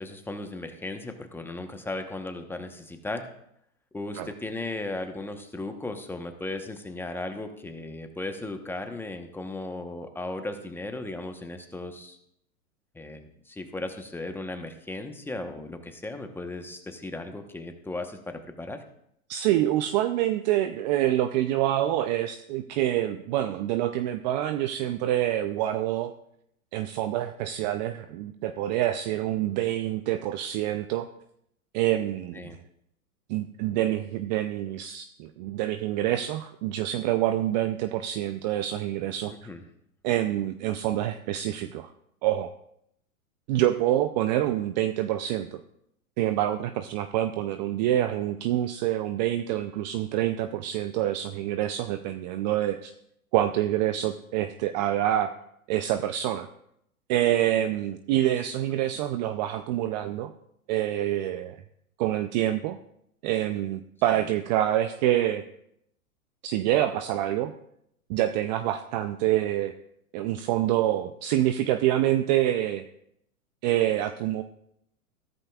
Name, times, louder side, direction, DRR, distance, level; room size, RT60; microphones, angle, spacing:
voice 1, 0.0-3.3 3.9-12.2 12.9-18.8 32.3-32.6 39.3-39.6, left 2 dB, 5° left, 6 dB, 0.9 m, -36 dB
voice 2, 19.3-26.1 26.7-31.1 31.7-32.5 33.3-39.3 40.0-41.9 42.2-42.5 43.5-45.6 46.2-52.9 53.3-55.3 55.7-56.5 57.1-60.3 60.7-61.6 62.0-62.8 63.2-65.4 66.4-67.5 68.1-69.7 70.1-72.8 73.6-74.4, right 13 dB, 35° right, 11 dB, 0.4 m, -26 dB
14.5 x 13.0 x 2.3 m, 0.76 s
hypercardioid pair, 120°, 43 cm